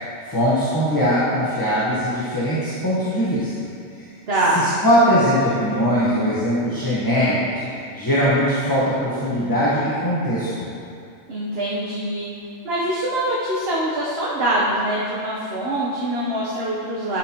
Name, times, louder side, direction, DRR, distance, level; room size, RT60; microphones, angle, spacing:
voice 1, 0.2-3.5 3.9-4.1 4.5-10.7, equal, 20° left, -9 dB, 1.1 m, -21 dB
voice 2, 4.3-4.6 11.3-12.3 12.6-17.2, right 1 dB, 55° right, -6 dB, 1.2 m, -24 dB
12.0 x 5.9 x 2.9 m, 2.4 s
omnidirectional pair, 1.3 m